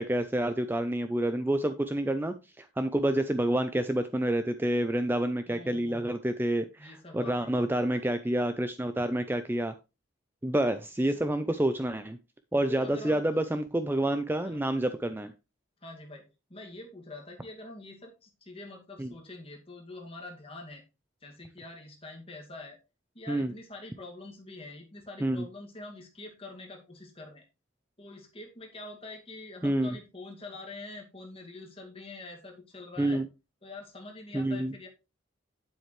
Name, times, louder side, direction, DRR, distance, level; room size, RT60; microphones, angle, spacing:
voice 1, 0.0-9.7 10.4-12.2 12.5-15.3 19.0-19.1 23.3-23.5 25.2-25.4 29.6-30.0 33.0-33.2 34.3-34.7, right 1 dB, 10° right, 9 dB, 0.4 m, -28 dB
voice 2, 5.5-6.2 6.8-7.7 12.7-13.2 13.5-13.6 14.4-14.6 15.8-20.8 21.2-22.8 23.1-27.5 28.0-33.2 33.6-34.9, left 2 dB, 30° left, 1 dB, 2.2 m, -45 dB
9.2 x 7.7 x 3.2 m, 0.28 s
head